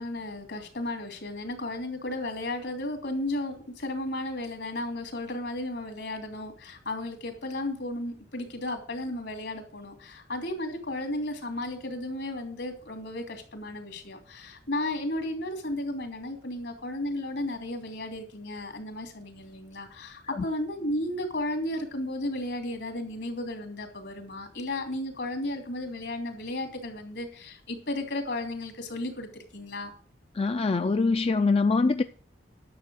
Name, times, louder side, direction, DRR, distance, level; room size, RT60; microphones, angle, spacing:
voice 1, 0.0-29.9, left 1 dB, 75° left, 3.1 m, -34 dB
voice 2, 30.3-32.0, left 3 dB, 35° left, 0.4 m, -24 dB
11.0 x 7.0 x 6.4 m
head